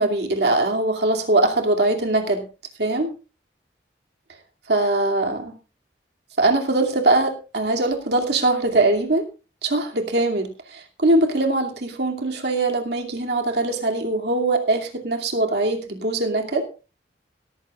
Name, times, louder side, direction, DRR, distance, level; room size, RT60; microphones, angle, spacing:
voice 1, 0.0-2.4 2.8-3.1 4.7-5.5 6.4-9.3 9.6-16.7, right 2 dB, 65° right, 2 dB, 2.5 m, -22 dB
17.0 x 14.5 x 2.4 m, 0.33 s
head